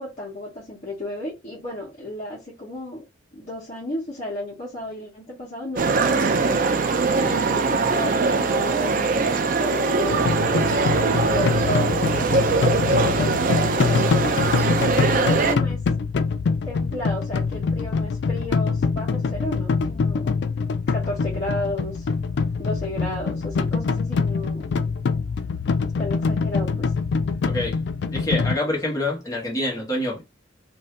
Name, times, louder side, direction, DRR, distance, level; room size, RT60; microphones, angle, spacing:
voice 1, 0.0-3.0 3.3-6.6 7.2-14.1 15.1-15.8 16.6-20.4 20.9-22.1 22.6-24.7 26.0-26.9, left 1 dB, 40° left, 1.1 m, -33 dB
sound 1, 5.8-15.6, right 4 dB, 45° right, 0.4 m, -22 dB
sound 2, 10.1-28.6, left 4 dB, 60° left, 0.3 m, -24 dB
voice 2, 28.1-30.2, left 1 dB, 20° left, 1.3 m, -26 dB
2.7 x 2.6 x 3.2 m
head